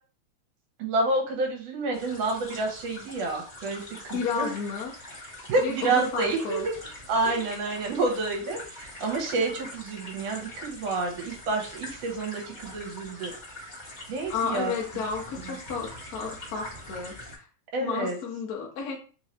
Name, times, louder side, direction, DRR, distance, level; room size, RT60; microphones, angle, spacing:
voice 1, 0.8-4.5 5.5-6.7 7.1-13.3 14.1-14.7 17.7-18.2, right 3 dB, 65° right, 1 dB, 2.0 m, -29 dB
sound 1, 1.9-17.4, left 1 dB, 35° left, 0.7 m, -43 dB
voice 2, 4.1-4.9 5.6-6.7 7.2-7.4 14.3-17.5 17.8-19.0, left 5 dB, 75° left, -1 dB, 0.8 m, -32 dB
4.7 x 2.7 x 3.1 m, 0.37 s
omnidirectional pair, 3.3 m